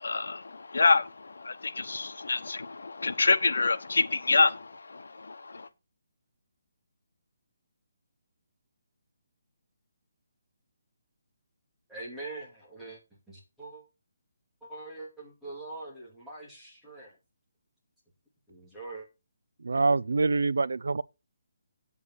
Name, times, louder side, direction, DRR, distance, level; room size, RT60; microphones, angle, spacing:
voice 1, 0.0-5.7, left 3 dB, 85° left, 1.1 m, -27 dB
voice 2, 11.9-13.0 13.3-13.8 14.6-17.2 18.5-19.1, right 2 dB, 5° right, 2.6 m, -43 dB
voice 3, 19.6-21.0, right 3 dB, 90° right, 0.5 m, -25 dB
8.5 x 8.5 x 4.5 m
hypercardioid pair, 175°, 0 cm